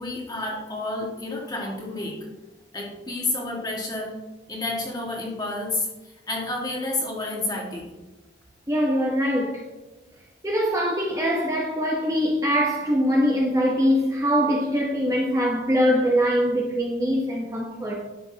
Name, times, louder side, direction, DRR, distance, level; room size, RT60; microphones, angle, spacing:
voice 1, 0.0-2.2 2.7-4.2 4.5-7.9, left 2 dB, 20° left, 1.7 m, -30 dB
voice 2, 8.7-9.6 10.4-18.0, equal, 15° right, 0.9 m, -23 dB
10.5 x 7.0 x 2.8 m
head